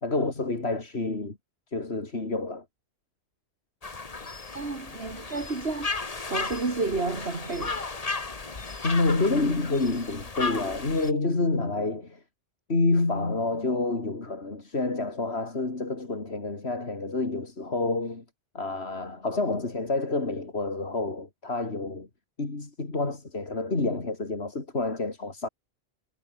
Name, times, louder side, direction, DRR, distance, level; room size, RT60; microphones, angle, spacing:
voice 1, 0.0-1.4 1.7-2.7 8.8-12.2 12.7-18.2 18.6-22.1 22.4-25.5, left 3 dB, 85° left, 3.5 m, -28 dB
sound 1, 3.8-11.1, left 3 dB, 35° left, 1.5 m, -35 dB
voice 2, 4.5-7.8, right 3 dB, 75° right, 2.9 m, -31 dB
omnidirectional pair, 1.1 m